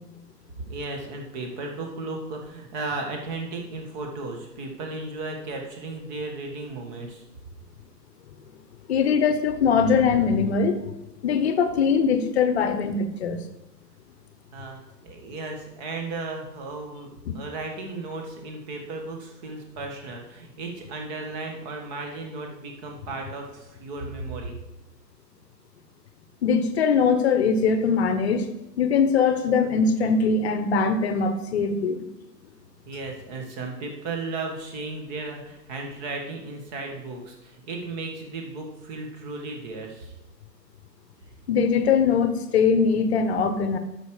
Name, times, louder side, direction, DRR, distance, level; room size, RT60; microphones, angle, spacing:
voice 1, 0.7-7.2 14.5-24.6 32.8-40.1, right 3 dB, 25° right, 2 dB, 1.7 m, -35 dB
voice 2, 8.9-10.8 11.2-13.4 17.3-17.4 26.4-28.4 28.8-32.0 41.5-43.8, left 5 dB, 40° left, 9 dB, 1.1 m, -21 dB
10.5 x 6.4 x 4.9 m, 0.94 s
hypercardioid pair, 145°, 50 cm